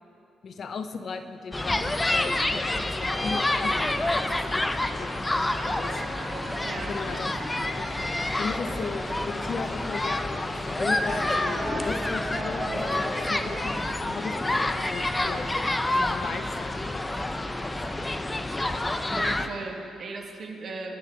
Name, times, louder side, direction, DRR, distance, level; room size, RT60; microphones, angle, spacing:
voice 1, 0.4-6.0 6.9-7.3 7.6-7.9 8.4-15.5 15.9-18.6, left 5 dB, 50° left, 8 dB, 0.9 m, -37 dB
sound 1, 1.5-19.5, left 2 dB, 20° left, 1.0 m, -28 dB
sound 2, 5.5-15.5, right 1 dB, 75° right, 4.0 m, -40 dB
voice 2, 6.6-7.0 19.1-21.0, right 3 dB, 55° right, 2 dB, 1.9 m, -37 dB
25.0 x 11.0 x 3.8 m, 2.6 s
hypercardioid pair, 40°, 0 cm